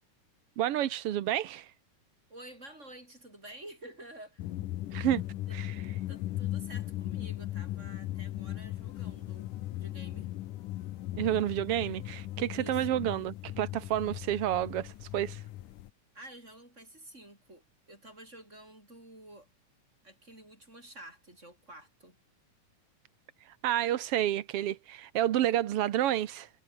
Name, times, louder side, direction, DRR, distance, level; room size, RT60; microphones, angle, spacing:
voice 1, 0.6-1.7 4.9-5.2 5.5-5.8 11.1-15.4 23.4-26.5, right 12 dB, 65° right, 1.6 m, -30 dB
voice 2, 2.3-4.5 5.5-5.6 6.1-10.3 12.5-13.0 16.1-19.5 20.0-22.2, right 1 dB, 20° right, 7.9 m, -50 dB
sound 1, 4.4-15.9, left 14 dB, 90° left, 2.6 m, -38 dB
omnidirectional pair, 3.6 m